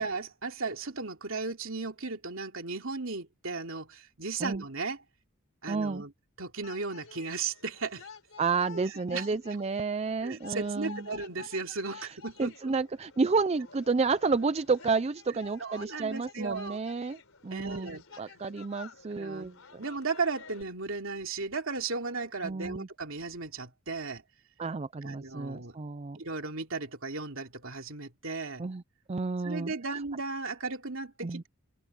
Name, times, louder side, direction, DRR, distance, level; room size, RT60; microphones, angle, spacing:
voice 1, 0.0-5.0 5.6-6.1 6.4-8.1 8.7-9.4 10.2-12.7 15.6-16.8 17.5-18.4 19.1-19.5 19.8-24.2 25.0-25.8 26.1-28.6 29.4-31.5, right 4 dB, 65° right, 3.0 m, -36 dB
voice 2, 5.7-6.0 8.4-11.0 11.9-12.1 12.4-17.9 18.2-19.6 22.4-22.9 24.6-26.2 28.6-28.8 29.1-30.0 31.2-31.4, right 4 dB, 30° right, 0.4 m, -31 dB
sound 1, 6.6-20.6, left 5 dB, 70° left, 4.1 m, -51 dB
head